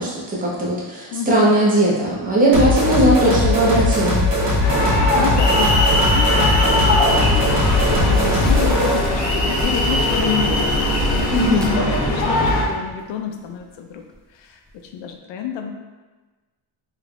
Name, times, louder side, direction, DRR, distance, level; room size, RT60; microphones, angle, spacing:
voice 1, 0.0-4.2 11.3-11.8, right 1 dB, 20° right, -6 dB, 0.8 m, -18 dB
voice 2, 1.1-1.7 3.2-3.5 4.7-7.8 8.0-11.1 11.4-14.0 14.3-15.8, left 7 dB, 90° left, 4 dB, 0.5 m, -29 dB
sound 1, 2.5-9.0, left 2 dB, 90° right, 1.3 m, -19 dB
sound 2, 4.6-12.6, left 1 dB, 70° left, 0.9 m, -20 dB
sound 3, 7.2-12.9 13.3-13.6 14.1-14.2 14.7-14.8, right 1 dB, ahead, 0.3 m, -29 dB
3.2 x 3.2 x 2.5 m, 1.3 s
cardioid pair, 120°, 43 cm